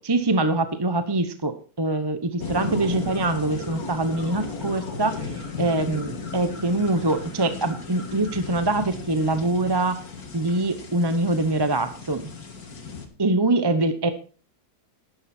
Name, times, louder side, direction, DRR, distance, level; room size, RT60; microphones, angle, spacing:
voice 1, 0.0-10.0 10.3-12.3 13.2-14.1, right 2 dB, 20° right, 10 dB, 0.7 m, -24 dB
sound 1, 2.4-13.1, left 4 dB, 65° left, 2.4 m, -35 dB
11.5 x 10.5 x 4.4 m, 0.37 s
omnidirectional pair, 1.7 m